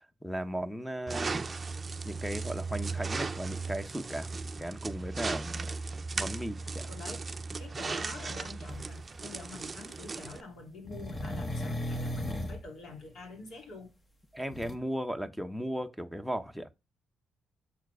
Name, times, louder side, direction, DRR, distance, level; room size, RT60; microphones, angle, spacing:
voice 1, 0.0-1.4 2.0-4.3 4.6-5.6 6.2-6.9 14.3-16.7, equal, ahead, 0.9 m, -36 dB
sound 1, 1.1-10.4, right 4 dB, 30° right, 0.6 m, -37 dB
voice 2, 6.8-7.3 7.6-13.9, left 3 dB, 65° left, 3.1 m, -46 dB
sound 2, 8.7-8.8 10.8-12.6 14.5-14.8, left 1 dB, 25° left, 1.3 m, -35 dB
7.3 x 4.5 x 4.8 m
cardioid pair, 90°, 0 cm